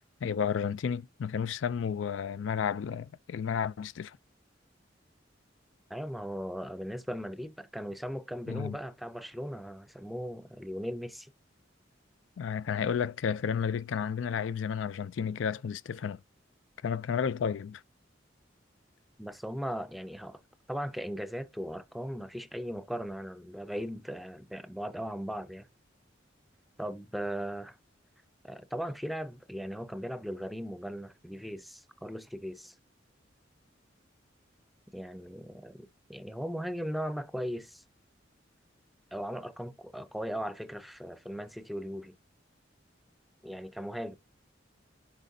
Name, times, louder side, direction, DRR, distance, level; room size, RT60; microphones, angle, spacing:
voice 1, 0.2-4.2 8.5-8.8 12.4-16.2 16.8-17.8, left 7 dB, 90° left, 0.4 m, -32 dB
voice 2, 5.9-11.3 19.2-20.4 20.7-25.7 26.8-27.8 28.4-32.7 34.9-37.8 39.1-42.1 43.4-44.1, equal, ahead, 0.5 m, -38 dB
10.0 x 4.2 x 2.7 m
head